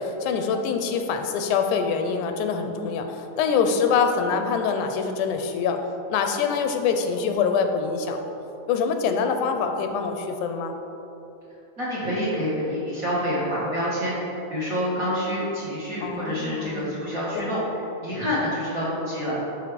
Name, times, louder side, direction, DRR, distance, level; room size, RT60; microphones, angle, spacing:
voice 1, 0.0-5.8 6.1-8.2 8.7-10.7 16.0-16.9 17.3-17.5, left 6 dB, 90° left, 6 dB, 2.2 m, -25 dB
voice 2, 11.8-14.2 14.5-19.4, equal, 35° right, -8 dB, 1.7 m, -27 dB
11.0 x 4.4 x 5.1 m, 3.0 s
omnidirectional pair, 3.5 m